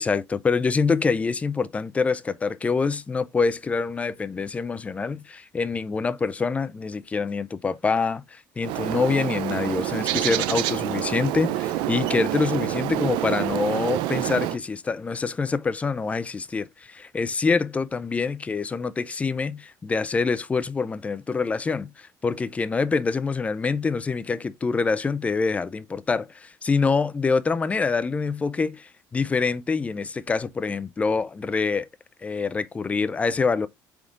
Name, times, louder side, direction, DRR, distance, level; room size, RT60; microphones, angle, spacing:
voice 1, 0.0-31.9 32.2-33.7, left 4 dB, 15° left, 0.3 m, -25 dB
Bird, 8.6-14.6, right 14 dB, 80° right, 0.4 m, -27 dB
3.8 x 3.5 x 3.7 m
cardioid pair, 125°, 8 cm